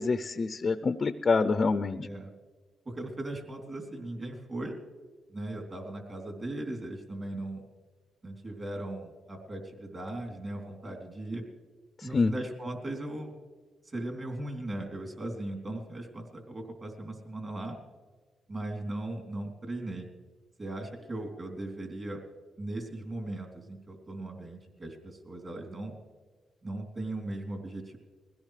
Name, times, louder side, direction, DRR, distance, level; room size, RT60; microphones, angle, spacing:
voice 1, 0.0-2.1 12.0-12.3, left 4 dB, 35° left, 10 dB, 0.5 m, -26 dB
voice 2, 2.8-4.7 5.3-7.6 8.2-11.4 12.0-13.3 13.8-17.8 18.5-20.1 20.6-22.2 22.6-26.0 26.6-28.0, right 1 dB, 35° right, 2 dB, 3.1 m, -38 dB
21.5 x 17.0 x 3.3 m, 1.4 s
cardioid pair, 100°, 0 cm